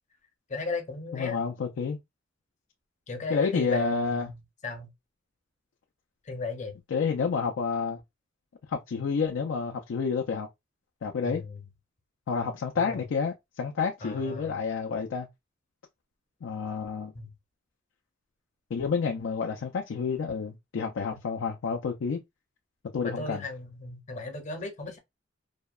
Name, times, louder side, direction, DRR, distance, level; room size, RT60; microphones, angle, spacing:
voice 1, 0.5-1.4 3.1-4.3 4.6-4.9 6.3-6.8 11.2-11.6 12.8-13.0 14.0-14.6 17.1-17.3 23.0-25.0, left 3 dB, 40° left, 0.6 m, -35 dB
voice 2, 1.1-2.0 3.3-4.3 6.9-8.0 8.7-10.5 11.0-11.4 12.3-15.3 16.4-17.1 18.7-22.2 22.9-23.4, left 5 dB, 90° left, 0.4 m, -29 dB
2.7 x 2.0 x 2.3 m
head